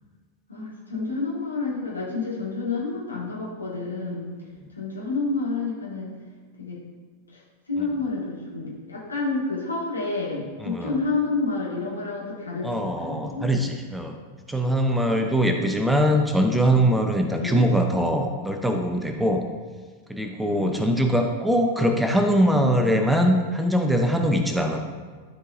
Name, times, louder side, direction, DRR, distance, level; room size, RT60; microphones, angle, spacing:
voice 1, 0.5-4.3 4.7-6.1 6.6-6.8 7.3-7.4 7.7-13.5 15.4-16.0 17.4-17.7 20.4-20.9, left 3 dB, 80° left, -5 dB, 1.7 m, -29 dB
voice 2, 10.6-11.0 12.6-14.2 14.5-19.4 20.1-24.8, equal, 5° right, 4 dB, 0.6 m, -22 dB
12.0 x 4.7 x 2.6 m, 1.4 s
figure-of-eight pair, 90°, 0 cm